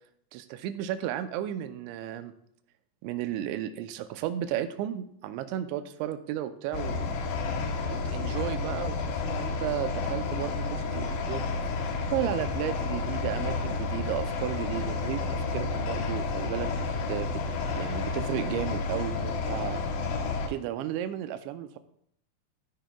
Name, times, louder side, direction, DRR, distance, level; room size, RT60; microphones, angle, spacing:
voice 1, 0.3-2.3 3.0-7.1 7.9-11.4 12.1-16.7 17.1-17.3 17.6-19.8 20.5-21.8, right 11 dB, 85° right, 9 dB, 2.9 m, -33 dB
sound 1, 6.7-20.5, left 4 dB, 70° left, 2.4 m, -31 dB
13.5 x 10.0 x 2.3 m, 0.69 s
omnidirectional pair, 5.3 m